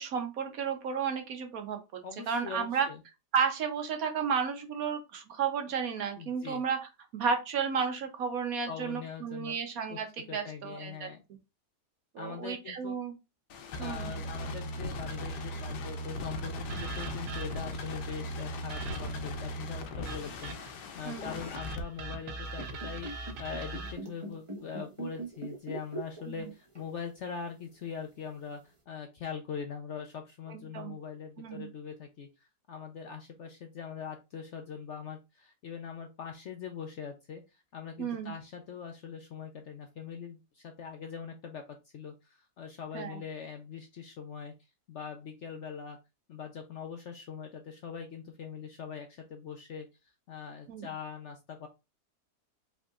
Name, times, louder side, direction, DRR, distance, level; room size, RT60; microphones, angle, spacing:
voice 1, 0.0-2.0 2.3-2.9 3.3-6.8 7.1-11.1 12.1-13.1 13.8-14.2 21.1-21.4 26.3-26.5 30.5-31.0 31.4-31.7 38.0-38.3 42.9-43.2 50.7-50.9, right 6 dB, 65° right, 6 dB, 1.2 m, -33 dB
voice 2, 2.0-3.0 6.2-6.6 8.7-9.6 9.9-10.0 10.3-11.2 12.2-13.0 13.8-44.5 44.9-46.0 46.3-49.9 50.3-51.7, left 6 dB, 60° left, 5 dB, 0.8 m, -42 dB
sound 1, 13.5-21.8, left 1 dB, 90° left, 1.3 m, -38 dB
sound 2, 16.7-17.8 18.7-19.3 20.1-20.9 21.6-23.9, right 2 dB, 85° right, 1.4 m, -41 dB
sound 3, 22.4-26.5 26.8-27.0 27.8-27.9, right 2 dB, 20° right, 1.0 m, -41 dB
5.2 x 3.6 x 2.4 m, 0.26 s
omnidirectional pair, 1.7 m